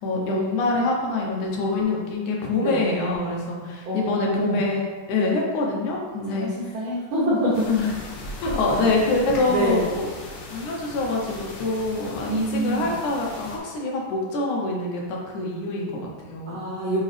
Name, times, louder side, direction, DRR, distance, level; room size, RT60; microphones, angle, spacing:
voice 1, 0.0-6.8 7.7-7.9 8.4-10.1 10.5-16.7, left 3 dB, 70° left, -2 dB, 2.1 m, -25 dB
voice 2, 3.9-4.6 6.2-7.7 8.7-8.9 9.5-9.9 12.3-12.9 16.5-17.0, right 1 dB, 80° right, -6 dB, 1.1 m, -26 dB
sound 1, 7.5-13.6, left 2 dB, 90° left, 2.7 m, -37 dB
7.2 x 4.0 x 3.3 m, 1.4 s
omnidirectional pair, 3.8 m